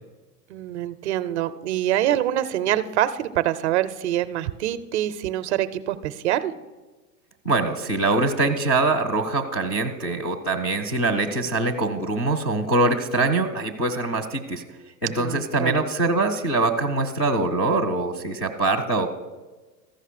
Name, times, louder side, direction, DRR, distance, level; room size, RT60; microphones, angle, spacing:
voice 1, 0.5-6.5 10.0-10.2 15.2-15.7, right 12 dB, 45° right, 13 dB, 0.5 m, -25 dB
voice 2, 7.4-14.6 15.0-19.1, right 3 dB, 20° left, 0 dB, 0.3 m, -23 dB
14.0 x 5.5 x 6.5 m, 1.2 s
supercardioid pair, 150°, 49 cm